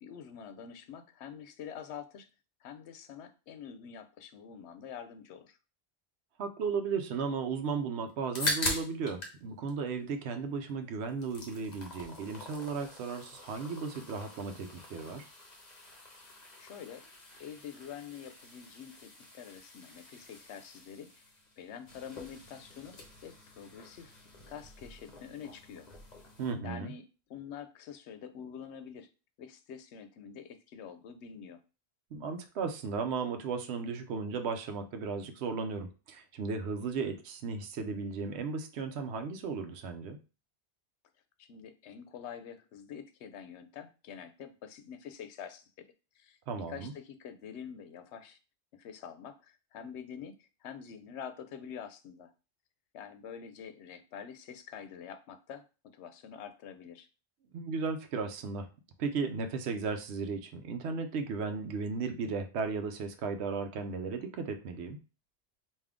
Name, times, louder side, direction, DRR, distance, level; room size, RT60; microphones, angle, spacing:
voice 1, 0.0-2.3 2.6-5.6 16.6-17.0 17.4-21.2 21.6-24.1 24.5-25.9 26.6-29.1 29.4-31.6 41.4-45.9 46.1-46.4 46.7-48.4 48.7-52.3 52.9-57.1, left 8 dB, 85° left, 9 dB, 0.9 m, -46 dB
voice 2, 6.4-15.3 26.4-26.9 32.1-40.2 46.5-46.9 57.5-58.7 59.0-65.0, right 5 dB, 80° right, 7 dB, 0.9 m, -35 dB
sound 1, 8.1-9.4 9.7-10.7 11.0-26.5, left 2 dB, 45° left, 0.9 m, -43 dB
3.4 x 2.6 x 3.6 m, 0.32 s
omnidirectional pair, 1.1 m